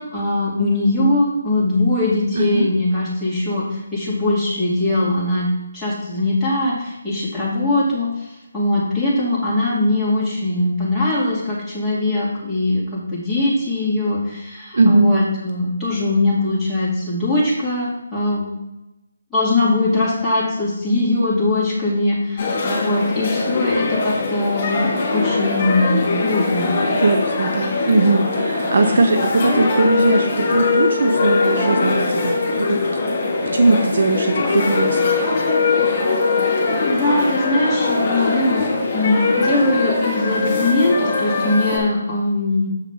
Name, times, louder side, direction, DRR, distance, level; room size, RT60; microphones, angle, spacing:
voice 1, 0.0-5.5 5.7-8.3 8.5-18.5 19.3-24.8 25.1-26.8 36.8-38.6 38.9-42.7, left 2 dB, ahead, -12 dB, 2.7 m, -21 dB
voice 2, 2.4-2.7 14.7-15.2 26.9-32.8 33.5-35.0, right 2 dB, 60° right, 5 dB, 0.7 m, -19 dB
sound 1, 22.4-41.8, left 3 dB, 40° left, 2.4 m, -21 dB
7.4 x 6.2 x 3.5 m, 0.94 s
figure-of-eight pair, 155°, 0 cm